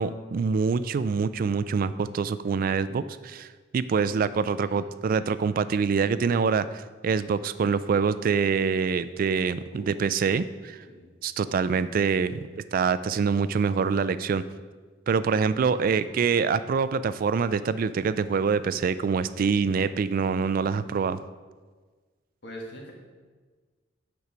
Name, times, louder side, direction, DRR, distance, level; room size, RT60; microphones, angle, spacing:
voice 1, 0.0-3.5 3.7-10.8 11.2-14.4 15.1-21.2, right 5 dB, 50° right, 15 dB, 0.3 m, -25 dB
voice 2, 9.7-10.0 10.9-11.1 12.4-12.6 15.7-16.1 22.4-22.9, equal, 65° left, -1 dB, 1.6 m, -44 dB
8.1 x 4.6 x 5.1 m, 1.4 s
head